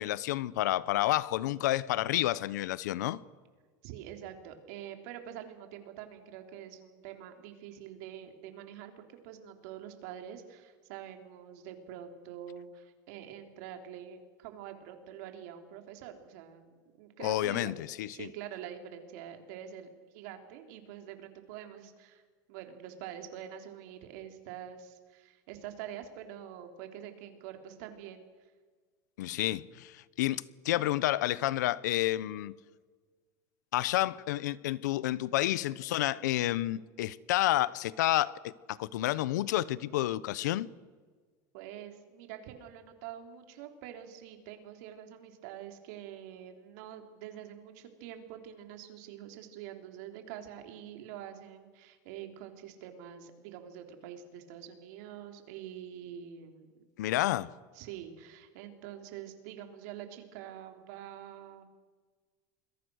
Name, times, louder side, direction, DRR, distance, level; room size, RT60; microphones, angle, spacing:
voice 1, 0.0-3.2 17.2-18.3 29.2-32.6 33.7-40.7 57.0-57.5, left 15 dB, 90° left, 0.9 m, -30 dB
voice 2, 3.8-17.7 18.1-22.2 22.5-28.2 41.5-56.8 57.7-61.6, right 10 dB, 70° right, 3.7 m, -46 dB
27.5 x 22.0 x 6.5 m
supercardioid pair, 140°, 9 cm